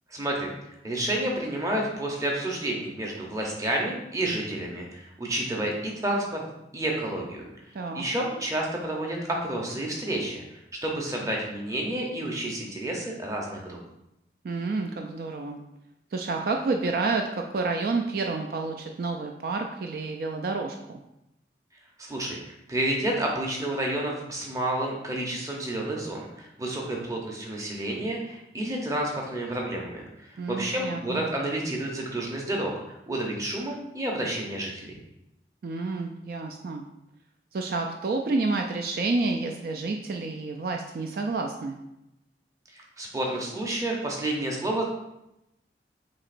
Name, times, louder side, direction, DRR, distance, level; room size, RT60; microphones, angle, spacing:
voice 1, 0.1-0.5 0.8-6.4 6.7-7.5 7.9-13.8 22.0-35.0 42.7-44.8, right 1 dB, 20° right, -1 dB, 0.7 m, -30 dB
voice 2, 14.4-15.6 16.1-21.0 30.4-31.3 35.6-36.8 37.5-41.8, right 3 dB, 55° right, 3 dB, 0.3 m, -29 dB
7.3 x 2.9 x 2.5 m, 0.88 s
head